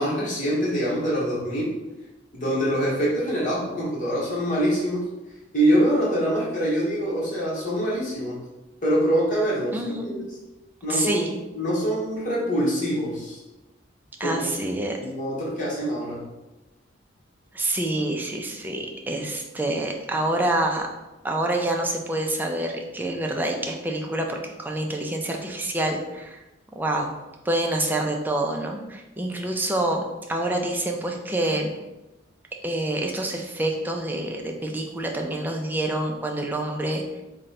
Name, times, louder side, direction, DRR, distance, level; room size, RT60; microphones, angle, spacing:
voice 1, 0.0-1.7 2.3-5.1 5.5-8.4 8.8-10.2 10.8-11.3 11.5-13.4 14.2-14.4 15.0-16.2, equal, 40° left, -6 dB, 1.1 m, -24 dB
voice 2, 9.7-10.2 10.9-11.3 14.2-15.0 17.5-20.9 21.2-26.4 26.7-27.1 27.4-30.0 30.3-31.7 32.6-37.0, right 1 dB, 10° right, 1 dB, 0.4 m, -27 dB
3.7 x 2.2 x 4.0 m, 1.0 s
head